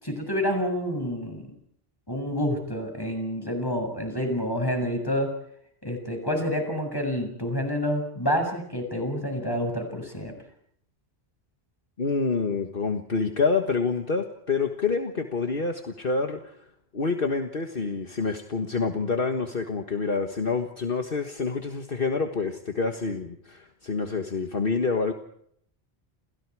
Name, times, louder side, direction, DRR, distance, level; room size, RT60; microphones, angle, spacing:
voice 1, 0.0-1.5 2.1-5.3 5.8-10.3, equal, 20° left, 4 dB, 7.2 m, -28 dB
voice 2, 12.0-16.6 16.9-25.1, left 4 dB, 55° left, 5 dB, 1.8 m, -27 dB
29.0 x 28.5 x 4.9 m, 0.69 s
omnidirectional pair, 1.1 m